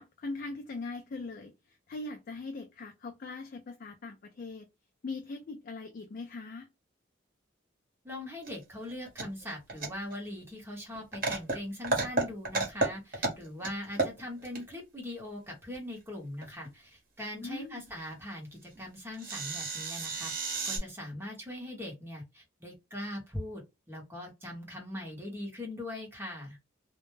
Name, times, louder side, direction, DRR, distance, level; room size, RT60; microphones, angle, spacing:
voice 1, 0.0-1.5 1.9-4.6 5.0-6.7 17.4-17.8, left 3 dB, 45° left, 0.4 m, -40 dB
voice 2, 8.0-23.6 23.9-26.6, left 1 dB, 10° right, 0.8 m, -41 dB
sound 1, 8.5-8.6 8.8-10.2 10.4-10.5 10.9-11.6 11.8-12.9 13.1-13.7 14.0-14.6 16.4-16.7 17.9-18.0 18.2-18.3 18.8-18.9 19.1-20.8, right 2 dB, 50° right, 0.9 m, -31 dB
2.1 x 2.0 x 3.0 m
head